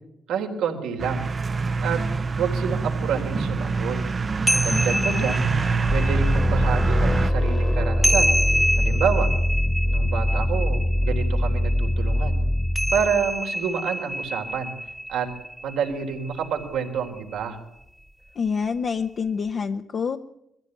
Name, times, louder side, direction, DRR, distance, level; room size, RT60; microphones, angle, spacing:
voice 1, 0.3-1.2 1.8-2.0 2.4-4.0 4.6-5.4 5.9-8.3 8.8-9.3 9.9-12.4 12.9-14.7 15.1-15.3 15.6-17.6, right 7 dB, 85° right, 3 dB, 3.6 m, -28 dB
sound 1, 1.0-7.3, right 4 dB, 35° right, 0.8 m, -25 dB
sound 2, 1.6-1.7 2.3-2.4 2.7-2.8 4.0-17.5, equal, 5° right, 1.1 m, -29 dB
voice 2, 4.7-5.3 18.3-20.2, left 6 dB, 50° left, 4 dB, 1.0 m, -27 dB
sound 3, 5.8-13.3, left 1 dB, 15° left, 1.5 m, -22 dB
22.0 x 15.0 x 9.5 m, 0.82 s
cardioid pair, 90°, 0 cm